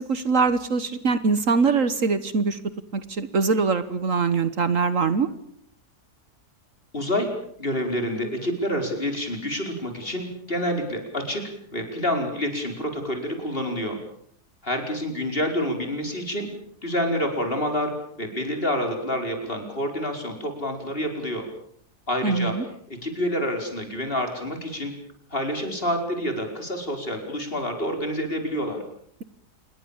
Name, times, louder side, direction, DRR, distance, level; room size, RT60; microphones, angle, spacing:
voice 1, 0.0-2.6 2.9-5.3 22.2-22.6, right 4 dB, 60° right, 13 dB, 1.6 m, -23 dB
voice 2, 6.9-7.3 7.6-11.4 11.7-14.0 14.6-16.5 16.8-21.4 22.1-22.6 23.0-24.9 25.3-28.8, equal, 35° left, 4 dB, 5.2 m, -28 dB
27.5 x 22.0 x 7.2 m, 0.63 s
omnidirectional pair, 1.6 m